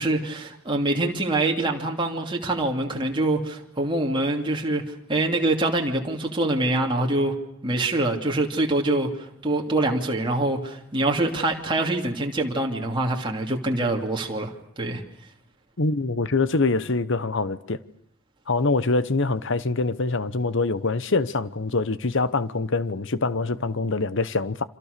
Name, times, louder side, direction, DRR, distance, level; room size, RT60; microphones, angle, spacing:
voice 1, 0.0-7.3 7.6-15.0, right 2 dB, 25° right, 2.9 m, -25 dB
voice 2, 15.8-17.8 18.5-24.6, left 3 dB, 60° left, 1.1 m, -24 dB
28.5 x 26.5 x 6.8 m
head